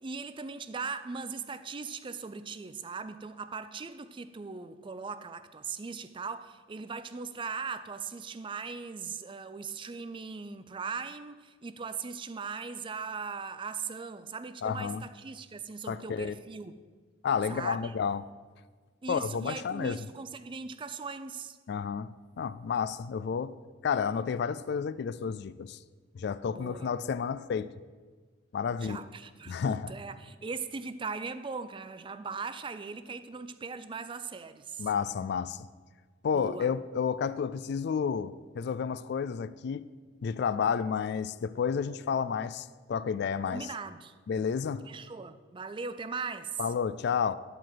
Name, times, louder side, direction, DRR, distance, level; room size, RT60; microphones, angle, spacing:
voice 1, 0.0-16.7 17.5-17.9 19.0-21.6 26.5-27.0 28.8-34.9 36.3-36.7 43.5-44.1 44.8-46.6, right 5 dB, 25° right, 0.4 m, -39 dB
voice 2, 14.6-15.0 15.9-16.3 17.2-18.3 19.1-20.0 21.7-23.6 23.8-25.8 26.1-27.7 28.5-29.0 29.5-29.9 34.8-35.7 36.2-39.8 40.2-43.7 44.3-44.9 46.6-47.3, left 6 dB, 60° left, 0.3 m, -31 dB
11.5 x 4.6 x 7.5 m
head